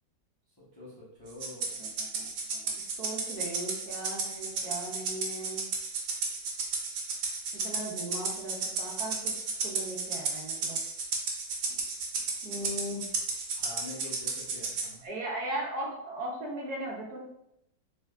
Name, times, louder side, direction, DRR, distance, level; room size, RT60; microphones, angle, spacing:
voice 1, 0.7-1.8 12.5-12.7 13.5-15.0, left 2 dB, 25° left, -9 dB, 0.5 m, -46 dB
Rattle (instrument), 1.4-14.9, right 4 dB, 90° right, 1.4 m, -33 dB
voice 2, 1.8-2.3 2.6-5.6 7.5-9.3 9.6-10.8 12.4-13.0 15.0-17.2, right 1 dB, 65° right, -3 dB, 1.1 m, -38 dB
3.5 x 2.9 x 2.3 m, 0.80 s
omnidirectional pair, 1.9 m